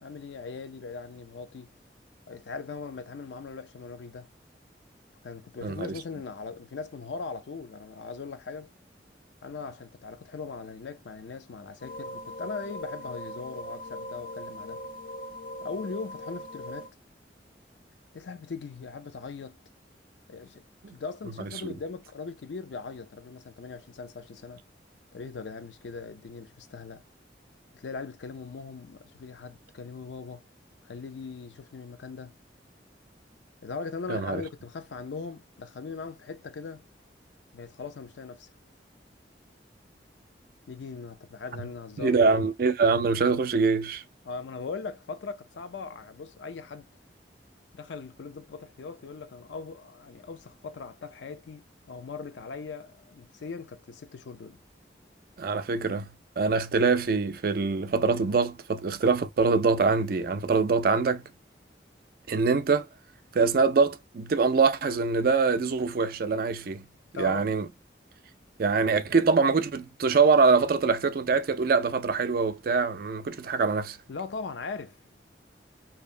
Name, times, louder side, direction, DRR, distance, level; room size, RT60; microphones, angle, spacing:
voice 1, 0.0-1.7 2.3-4.3 5.2-8.7 9.4-14.8 15.6-16.9 18.1-19.6 20.3-20.6 20.9-24.6 25.1-27.0 27.7-30.4 30.8-32.3 33.6-36.8 37.5-38.5 40.7-42.2 44.2-46.9 47.7-54.6 67.1-67.5 74.1-75.0, left 4 dB, 85° left, 0.4 m, -39 dB
voice 2, 5.6-5.9 20.8-20.9 21.6-21.7 34.1-34.4 41.6-41.7 42.0-44.0 55.4-56.1 56.4-61.2 62.3-62.9 63.3-66.9 67.2-67.7 68.6-74.0, right 4 dB, 55° right, 0.4 m, -24 dB
sound 1, 11.8-16.9, equal, 50° left, 0.8 m, -40 dB
2.7 x 2.1 x 2.4 m
head